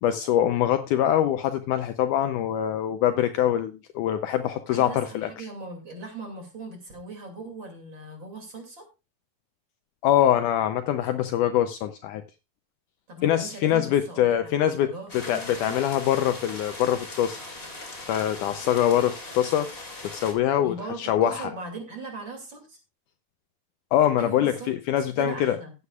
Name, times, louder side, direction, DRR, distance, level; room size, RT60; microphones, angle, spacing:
voice 1, 0.0-5.3 10.0-12.2 13.2-17.4 18.1-19.7 20.0-21.5 23.9-25.6, left 11 dB, 80° left, 9 dB, 1.9 m, -24 dB
voice 2, 4.7-8.9 13.1-15.9 20.6-22.8 24.2-24.7 25.2-25.7, right 3 dB, 35° right, 3 dB, 2.8 m, -39 dB
sound 1, 15.1-20.3, left 2 dB, 20° left, 2.0 m, -40 dB
15.0 x 9.7 x 2.3 m, 0.27 s
omnidirectional pair, 4.1 m